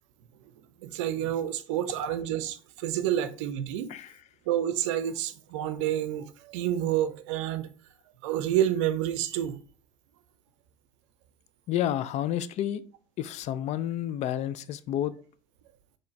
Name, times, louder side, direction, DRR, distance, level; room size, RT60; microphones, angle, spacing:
voice 1, 0.8-3.9 4.5-7.7 8.2-9.6, right 11 dB, 70° right, 0.5 m, -29 dB
voice 2, 11.7-12.8 13.2-15.1, left 11 dB, 45° left, 0.4 m, -30 dB
4.4 x 3.1 x 3.2 m
hypercardioid pair, 75°, 16 cm